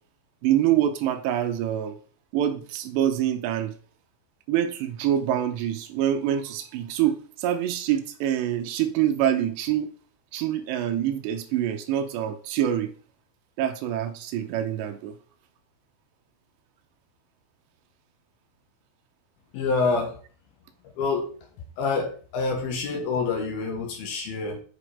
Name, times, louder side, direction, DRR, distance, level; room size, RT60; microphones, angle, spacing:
voice 1, 0.4-2.0 2.3-3.7 4.5-9.9 10.3-12.9 13.6-15.1, right 11 dB, 85° right, 3.0 m, -25 dB
voice 2, 19.5-20.2 21.0-21.3 21.8-24.6, left 4 dB, 65° left, 3.1 m, -27 dB
8.6 x 4.8 x 5.0 m
omnidirectional pair, 5.1 m